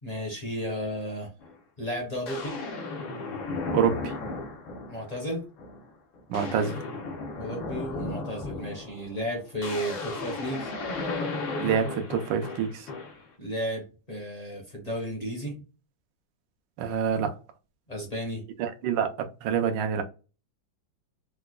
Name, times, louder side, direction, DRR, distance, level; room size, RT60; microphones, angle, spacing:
voice 1, 0.0-1.3 1.8-2.6 4.9-5.4 7.4-10.7 13.4-15.6 17.9-18.4, equal, 35° left, 0.6 m, -33 dB
sound 1, 1.4-1.5 2.3-5.1 5.6-5.9 6.1-13.3, left 3 dB, 80° left, 1.6 m, -35 dB
voice 2, 3.7-4.1 6.3-6.8 11.6-12.9 16.8-17.4 18.6-19.1 19.4-20.0, right 7 dB, 75° right, 1.3 m, -26 dB
4.7 x 2.2 x 2.3 m
omnidirectional pair, 2.1 m